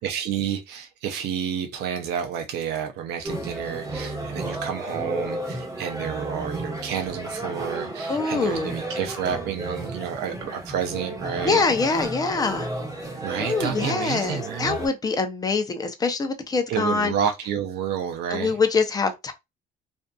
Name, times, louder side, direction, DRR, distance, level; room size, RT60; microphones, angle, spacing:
voice 1, 0.0-11.6 13.2-14.8 16.7-18.6, right 8 dB, 80° right, 0.5 m, -30 dB
sound 1, 3.2-14.9, right 2 dB, 20° right, 1.1 m, -33 dB
voice 2, 8.1-8.8 11.4-12.7 13.4-17.1 18.3-19.3, left 4 dB, 20° left, 0.5 m, -24 dB
2.5 x 2.4 x 2.2 m
cardioid pair, 110°, 17 cm